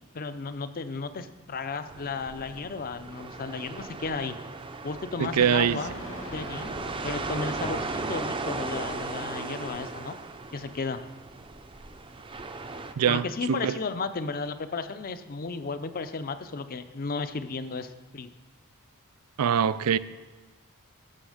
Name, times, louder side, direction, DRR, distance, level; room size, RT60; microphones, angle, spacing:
voice 1, 0.1-4.4 4.8-5.9 6.3-6.7 7.0-10.2 10.5-11.0 13.1-18.3, left 4 dB, 40° left, 11 dB, 0.6 m, -34 dB
sound 1, 1.4-8.4, left 1 dB, 60° left, 1.5 m, -45 dB
sound 2, 1.9-12.9, right 3 dB, 25° right, 0.5 m, -37 dB
voice 2, 5.2-5.8 13.0-13.8 19.4-20.0, right 8 dB, 90° right, 16 dB, 0.4 m, -23 dB
14.0 x 6.3 x 5.0 m, 1.3 s
head